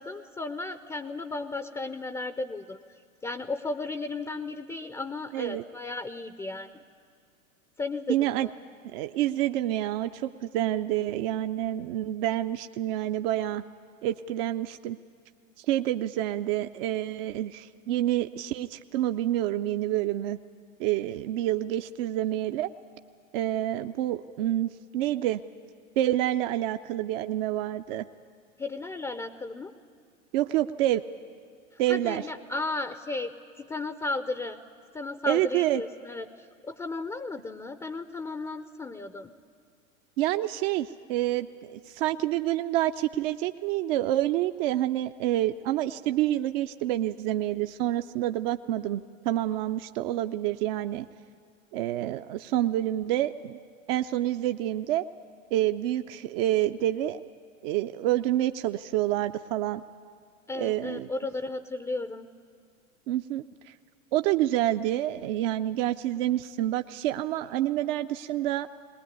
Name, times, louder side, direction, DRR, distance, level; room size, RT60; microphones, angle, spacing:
voice 1, 0.0-2.8 3.2-6.7 7.8-8.5 28.6-29.7 31.9-34.6 34.9-39.3 60.5-62.3, left 3 dB, 10° left, 10 dB, 0.5 m, -34 dB
voice 2, 5.3-5.6 8.1-8.5 8.9-13.6 14.0-15.0 15.6-20.4 20.8-22.7 23.3-25.4 26.0-28.0 30.3-31.0 31.8-32.2 35.3-35.8 40.2-51.1 51.7-53.6 53.9-55.1 55.5-57.2 57.6-59.8 60.5-61.1 63.1-63.4 64.1-68.7, right 13 dB, 45° right, 8 dB, 0.6 m, -28 dB
20.5 x 19.5 x 9.4 m, 2.1 s
figure-of-eight pair, 90°, 40 cm